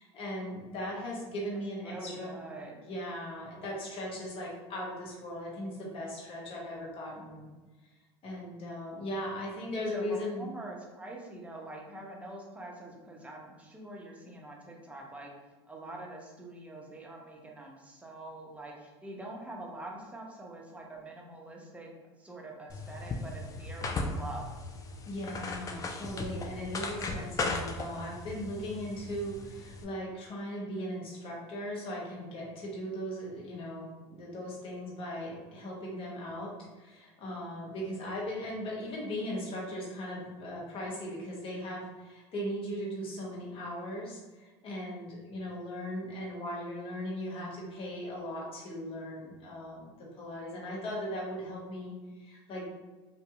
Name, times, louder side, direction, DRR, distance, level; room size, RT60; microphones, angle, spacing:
voice 1, 0.0-2.4 2.8-7.5 8.2-10.4 25.1-49.9 50.2-52.6, equal, 40° left, -4 dB, 1.0 m, -38 dB
voice 2, 1.5-2.8 9.9-15.3 15.6-21.9 22.2-24.4, right 2 dB, 10° right, -1 dB, 0.7 m, -45 dB
sound 1, 22.7-29.8, left 3 dB, 25° left, 0.4 m, -37 dB
2.7 x 2.6 x 2.4 m, 1.2 s
hypercardioid pair, 90°, 14 cm